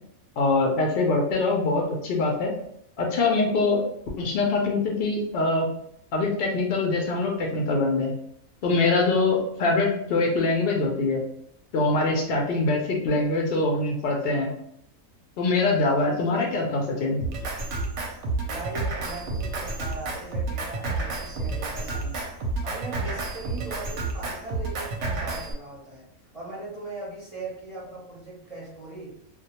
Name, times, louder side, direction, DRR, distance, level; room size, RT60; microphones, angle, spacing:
voice 1, 0.4-2.5 3.0-3.8 4.2-5.7 6.1-8.1 8.6-11.2 11.7-14.5 15.4-17.2, left 3 dB, 70° left, -1 dB, 0.5 m, -23 dB
Drum kit, 17.2-25.5, right 3 dB, 65° right, 0.8 m, -30 dB
voice 2, 18.5-22.3 22.6-26.1 26.3-29.2, right 3 dB, 35° right, -7 dB, 0.6 m, -39 dB
2.2 x 2.2 x 2.8 m, 0.71 s
omnidirectional pair, 1.5 m